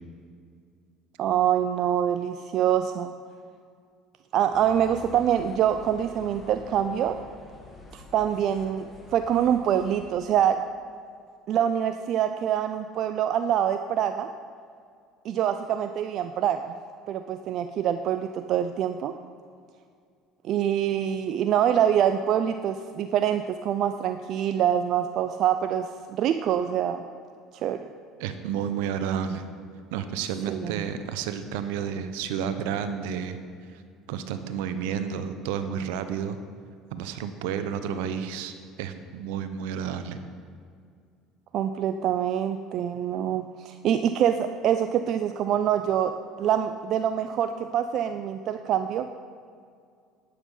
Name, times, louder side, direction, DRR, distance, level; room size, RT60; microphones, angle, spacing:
voice 1, 1.2-3.1 4.3-7.2 7.9-8.9 9.1-10.6 11.5-14.3 15.2-16.7 17.1-19.1 20.4-27.0 27.6-27.8 30.5-30.9 41.5-46.1 46.4-49.1, right 9 dB, 55° right, 9 dB, 0.4 m, -25 dB
sound 1, 4.5-10.1, left 2 dB, 25° left, 2.2 m, -47 dB
voice 2, 28.2-29.4 29.9-33.4 34.1-36.4 36.9-40.2, right 8 dB, 75° right, 10 dB, 0.8 m, -31 dB
11.5 x 8.4 x 5.5 m, 2.2 s
hypercardioid pair, 70°, 0 cm